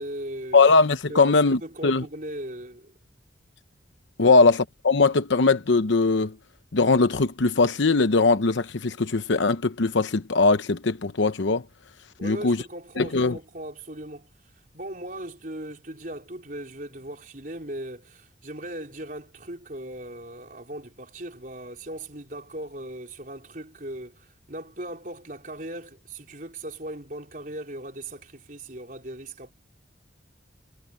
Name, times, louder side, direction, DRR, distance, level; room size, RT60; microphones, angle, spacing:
voice 1, 0.0-0.7 1.1-3.0 4.2-4.3 12.2-14.3 14.7-29.5, right 1 dB, 45° right, 4.0 m, -38 dB
voice 2, 0.5-2.0 4.2-6.3 6.7-11.6 12.2-12.6 13.0-13.4, left 3 dB, 75° left, 0.8 m, -20 dB
head